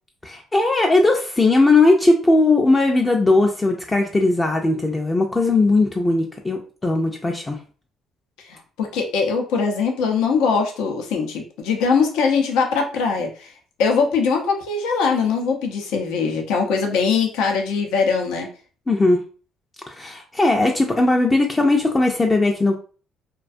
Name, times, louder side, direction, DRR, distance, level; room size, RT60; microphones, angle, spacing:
voice 1, 0.2-7.6 18.9-19.2 19.9-22.8, left 2 dB, 20° left, 2 dB, 0.3 m, -18 dB
voice 2, 8.4-13.5 13.8-18.5, left 5 dB, 90° left, 2 dB, 0.6 m, -21 dB
2.4 x 2.2 x 2.5 m, 0.40 s
cardioid pair, 100°, 0 cm